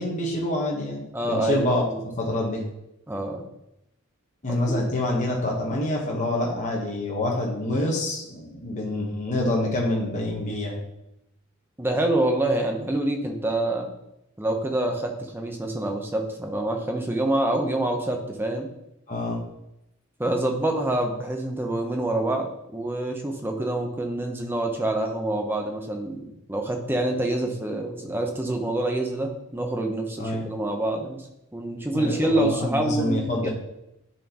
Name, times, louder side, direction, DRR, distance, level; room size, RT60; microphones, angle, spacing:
voice 1, 0.0-1.8 2.2-2.6 4.4-10.8 19.1-19.4 30.2-30.4 31.9-33.5, left 1 dB, 35° left, -2 dB, 1.2 m, -26 dB
voice 2, 1.1-2.0 3.1-3.5 4.7-4.9 11.8-13.9 14.4-18.7 20.2-31.2 31.5-33.5, right 1 dB, 10° right, 3 dB, 0.8 m, -26 dB
9.8 x 4.3 x 3.0 m, 0.84 s
head